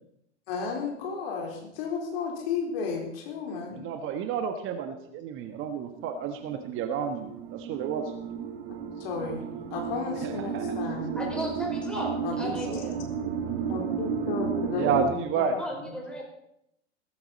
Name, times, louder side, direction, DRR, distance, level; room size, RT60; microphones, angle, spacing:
voice 1, 0.5-3.8 9.0-9.4 9.7-11.2 12.2-12.6 13.7-15.5 15.8-15.9, left 5 dB, 55° left, 1 dB, 4.1 m, -33 dB
voice 2, 3.7-8.1 10.2-10.6 11.3-11.5 12.6-13.1 14.7-15.6, right 7 dB, 35° right, 7 dB, 1.4 m, -31 dB
sound 1, 5.4-15.0, right 6 dB, 60° right, 2.4 m, -33 dB
voice 3, 11.2-13.0 13.3-13.4 15.6-16.2, equal, 5° left, -1 dB, 5.7 m, -35 dB
16.0 x 14.5 x 4.2 m, 0.76 s
figure-of-eight pair, 95°, 35 cm